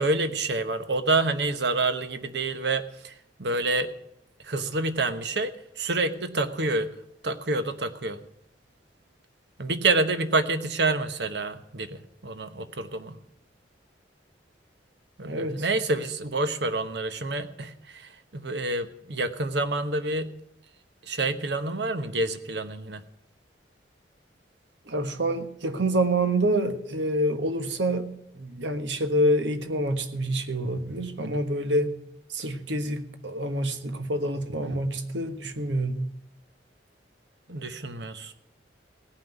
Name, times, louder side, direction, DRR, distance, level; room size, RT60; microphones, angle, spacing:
voice 1, 0.0-3.9 4.4-6.9 7.2-8.2 9.6-13.2 15.2-20.3 21.0-23.0 31.2-31.4 34.6-34.8 37.5-38.3, right 2 dB, 70° right, 10 dB, 1.1 m, -28 dB
voice 2, 15.2-15.6 24.9-31.9 32.3-36.1, right 1 dB, 90° right, 8 dB, 1.4 m, -27 dB
17.5 x 5.9 x 9.1 m, 0.77 s
head